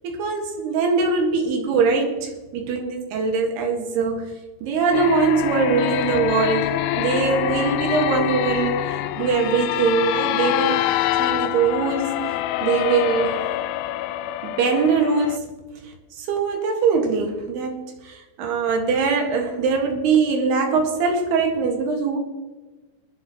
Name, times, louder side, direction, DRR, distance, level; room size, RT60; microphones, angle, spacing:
voice 1, 0.0-4.3 4.6-8.8 9.2-10.8 11.2-12.3 12.6-13.4 14.4-15.5 16.2-22.2, right 5 dB, 90° right, 2 dB, 3.8 m, -22 dB
sound 1, 4.9-15.4, left 14 dB, 80° left, 2.2 m, -25 dB
22.0 x 11.0 x 3.1 m, 1.2 s
omnidirectional pair, 4.5 m